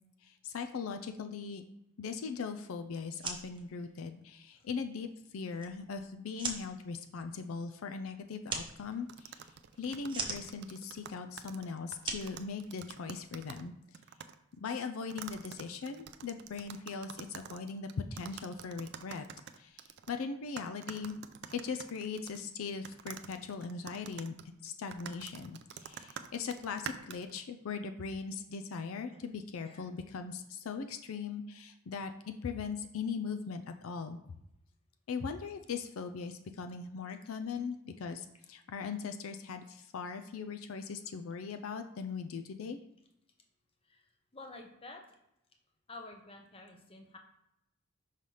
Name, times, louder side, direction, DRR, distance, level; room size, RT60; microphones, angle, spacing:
voice 1, 0.2-1.6 2.0-5.1 5.3-9.5 9.8-13.7 14.6-19.2 19.6-21.2 21.5-24.3 24.6-34.2 35.1-42.8, left 5 dB, 75° left, 7 dB, 0.4 m, -40 dB
sound 1, 3.0-13.2, right 4 dB, 25° right, 0.7 m, -44 dB
sound 2, 9.1-13.7 13.9-14.3 15.1-20.2 20.6-22.5 22.8-27.4, right 8 dB, 50° right, 0.4 m, -47 dB
voice 2, 44.3-45.2 45.9-47.2, left 2 dB, 25° left, 3 dB, 0.7 m, -50 dB
5.6 x 3.2 x 5.4 m, 0.83 s
head